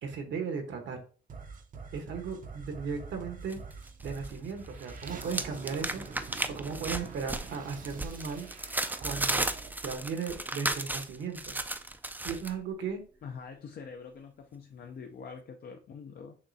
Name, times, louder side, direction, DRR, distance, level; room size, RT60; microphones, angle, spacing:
voice 1, 0.0-1.0 1.9-3.6 4.0-6.0 6.5-8.5 9.0-9.5 9.8-11.5 12.2-13.0, right 5 dB, 70° right, 5 dB, 1.2 m, -36 dB
sound 1, 1.3-10.6, right 5 dB, 45° right, 0.7 m, -45 dB
sound 2, 3.5-4.4 4.7-12.5, right 2 dB, 10° right, 0.4 m, -35 dB
voice 2, 13.2-16.4, left 5 dB, 50° left, 4 dB, 0.5 m, -45 dB
6.3 x 3.0 x 2.7 m, 0.39 s
cardioid pair, 90°, 20 cm